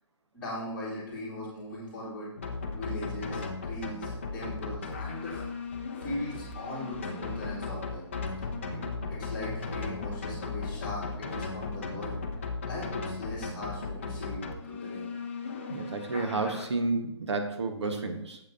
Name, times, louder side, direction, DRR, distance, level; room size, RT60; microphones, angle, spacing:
voice 1, 0.3-2.3 2.7-5.4 6.0-8.0 8.7-12.2 12.7-15.1, left 1 dB, 5° left, -11 dB, 2.9 m, -39 dB
sound 1, 2.4-16.7, left 4 dB, 25° left, 0.6 m, -36 dB
voice 2, 15.7-18.4, right 3 dB, 65° right, 5 dB, 1.3 m, -31 dB
8.8 x 7.5 x 2.7 m, 0.80 s
hypercardioid pair, 175°, 15 cm